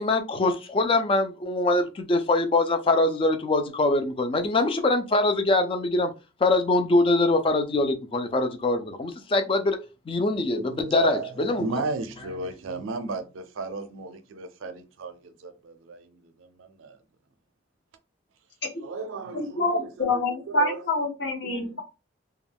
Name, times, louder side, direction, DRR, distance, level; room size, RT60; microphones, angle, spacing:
voice 1, 0.0-6.1 6.4-9.8 10.1-11.7, left 2 dB, 25° left, 0.3 m, -23 dB
voice 2, 10.5-17.0 18.8-20.8 21.4-21.8, right 3 dB, 90° right, 0.5 m, -35 dB
voice 3, 19.3-21.8, left 2 dB, 60° left, 0.7 m, -26 dB
2.3 x 2.1 x 3.4 m
head